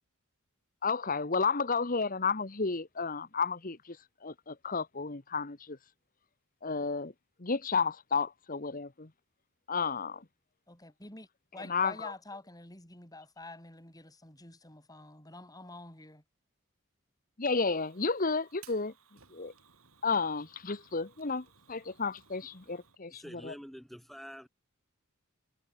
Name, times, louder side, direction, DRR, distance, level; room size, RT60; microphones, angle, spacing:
voice 1, 0.8-4.0 4.2-5.8 6.6-7.1 7.4-9.1 9.7-10.2 11.6-12.1 17.4-18.9 19.3-19.5 20.0-23.5, left 4 dB, 40° left, 1.3 m, -32 dB
voice 2, 10.7-11.3 11.5-16.2, left 2 dB, 15° left, 7.0 m, -48 dB
Fire, 17.6-23.0, right 7 dB, 75° right, 6.4 m, -61 dB
voice 3, 23.1-24.5, equal, ahead, 1.8 m, -47 dB
head